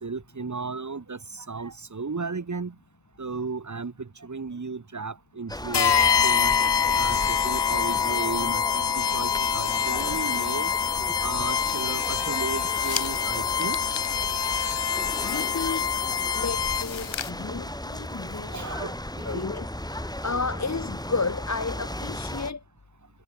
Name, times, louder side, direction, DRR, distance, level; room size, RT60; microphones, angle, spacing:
voice 1, 0.0-2.7 3.2-6.5 6.9-10.7 11.0-13.9 18.5-19.5 20.0-20.1, right 4 dB, 40° right, 2.6 m, -35 dB
sound 1, 5.5-22.5, left 1 dB, 10° left, 6.0 m, -36 dB
sound 2, 5.7-17.1, left 7 dB, 65° left, 1.8 m, -25 dB
sound 3, 8.9-17.3, left 8 dB, 90° left, 1.9 m, -41 dB
voice 2, 15.2-16.0 16.3-18.6 19.2-22.6, left 4 dB, 35° left, 2.3 m, -32 dB
wide cardioid pair, 85°, 45 cm